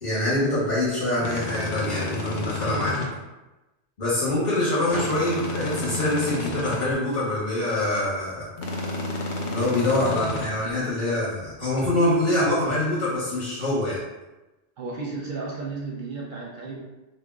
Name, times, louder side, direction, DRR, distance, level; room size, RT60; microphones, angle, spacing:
voice 1, 0.0-3.0 4.0-8.5 9.4-14.0, left 1 dB, 45° left, -8 dB, 0.9 m, -25 dB
sound 1, 1.2-3.1 4.9-6.8 8.6-10.5, left 2 dB, 85° left, 0.9 m, -30 dB
voice 2, 14.8-16.8, right 3 dB, 60° right, -3 dB, 0.6 m, -34 dB
2.4 x 2.1 x 3.4 m, 1.1 s
omnidirectional pair, 1.1 m